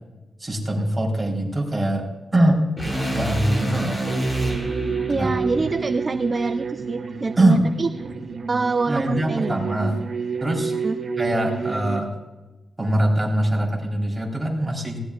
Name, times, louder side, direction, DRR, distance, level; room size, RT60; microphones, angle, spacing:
voice 1, 0.4-2.1 2.3-2.7 3.1-4.0 5.1-5.6 7.4-7.6 8.9-10.0 10.4-10.7 11.2-12.1 12.8-15.0, right 1 dB, 15° right, -2 dB, 3.8 m, -22 dB
sound 1, 2.8-7.0, right 1 dB, 20° left, 5.7 m, -28 dB
sound 2, 4.1-12.0, right 5 dB, 60° right, 1.6 m, -30 dB
voice 2, 5.1-7.9 8.5-9.5 10.8-11.0, right 3 dB, 35° right, 11 dB, 0.3 m, -25 dB
19.5 x 17.0 x 2.4 m, 1.1 s
wide cardioid pair, 120°, 0 cm